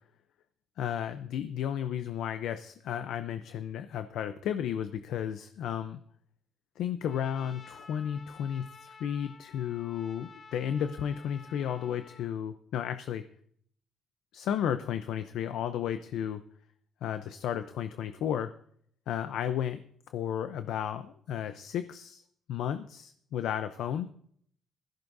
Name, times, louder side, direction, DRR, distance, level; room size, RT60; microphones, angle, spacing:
voice 1, 0.8-6.0 6.8-13.2 14.3-16.4 17.0-18.5 19.1-22.2 22.5-24.1, left 9 dB, 80° left, 10 dB, 0.7 m, -33 dB
Trumpet, 7.0-12.3, left 4 dB, 40° left, 1.0 m, -52 dB
16.5 x 15.0 x 2.7 m, 0.62 s
cardioid pair, 90°, 0 cm